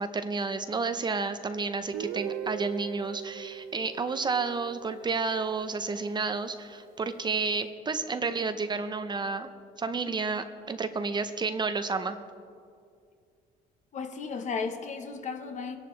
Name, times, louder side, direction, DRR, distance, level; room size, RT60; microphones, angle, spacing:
voice 1, 0.0-9.5 9.8-12.2, right 4 dB, 25° right, 9 dB, 0.7 m, -31 dB
Guitar, 1.9-5.8, right 9 dB, 85° right, 0.7 m, -39 dB
voice 2, 13.9-15.8, left 5 dB, 45° left, 6 dB, 1.2 m, -34 dB
22.0 x 11.0 x 3.3 m, 2.3 s
cardioid pair, 110°, 17 cm